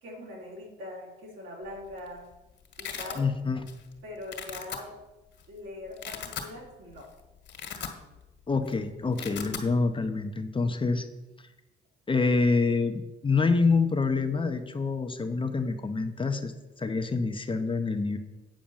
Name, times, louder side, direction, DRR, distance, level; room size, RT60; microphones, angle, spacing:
voice 1, 0.0-2.3 2.8-3.3 4.0-4.9 5.5-7.1, left 1 dB, 75° right, -2 dB, 3.5 m, -42 dB
Domestic sounds home sounds, 1.7-2.1 2.3-3.2 3.7-3.9 4.2-4.8 5.4-5.5 5.9-6.5 6.9-7.1 7.4-8.3 8.6-8.7 9.0-9.7, left 7 dB, 65° left, 1.7 m, -38 dB
voice 2, 3.2-3.6 8.5-11.1 12.1-18.2, left 4 dB, 25° left, 7 dB, 0.8 m, -26 dB
9.0 x 5.0 x 7.2 m, 1.0 s
cardioid pair, 90°, 20 cm